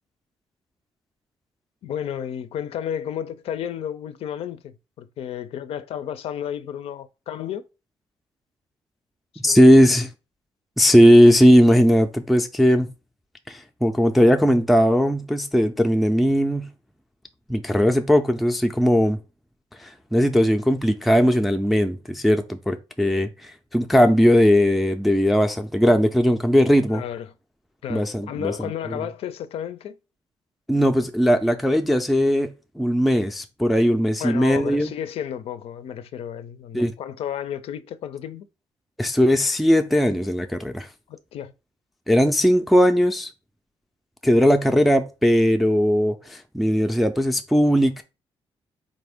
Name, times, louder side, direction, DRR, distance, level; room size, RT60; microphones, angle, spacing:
voice 1, 1.8-7.7 9.4-9.8 26.9-27.3 27.8-30.0 34.2-38.5 41.1-41.5, left 9 dB, 70° left, 0.4 m, -32 dB
voice 2, 9.4-10.1 10.8-12.9 13.5-16.7 17.5-19.2 19.8-27.0 27.9-29.0 30.7-32.5 32.8-34.9 36.7-36.9 39.0-40.9 42.1-43.3 44.2-48.0, equal, ahead, 0.3 m, -18 dB
4.0 x 2.5 x 3.5 m
cardioid pair, 150°, 10 cm